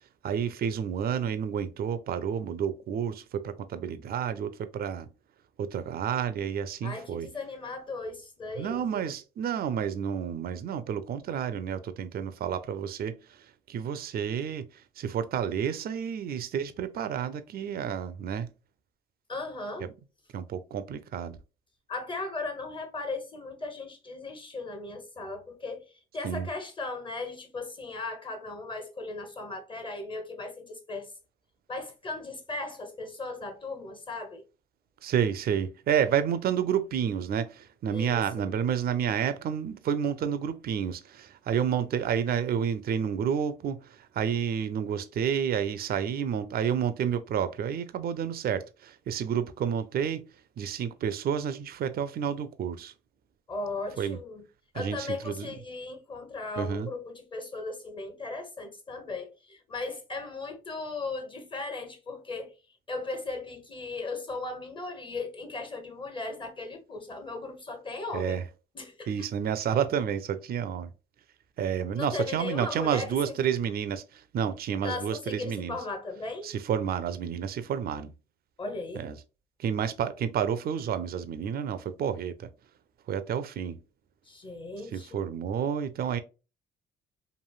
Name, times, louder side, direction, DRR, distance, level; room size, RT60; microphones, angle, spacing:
voice 1, 0.2-5.1 5.6-7.3 8.6-14.7 15.0-18.5 19.8-19.9 20.3-21.4 26.2-26.5 35.0-50.2 50.6-52.9 54.0-54.2 54.7-55.6 56.6-56.9 68.1-68.4 69.1-70.9 71.6-75.8 76.4-78.1 79.0-79.2 79.6-82.5 83.1-83.8 84.9-86.2, right 8 dB, 50° right, 0.4 m, -30 dB
voice 2, 6.8-9.1 19.3-19.9 21.9-31.1 31.7-34.4 37.9-38.5 53.5-54.4 54.7-62.5 62.9-68.4 68.7-69.1 71.9-73.3 74.8-76.5 78.6-79.1 84.2-85.3, left 3 dB, 25° left, 0.9 m, -37 dB
3.1 x 2.5 x 2.2 m
cardioid pair, 90°, 20 cm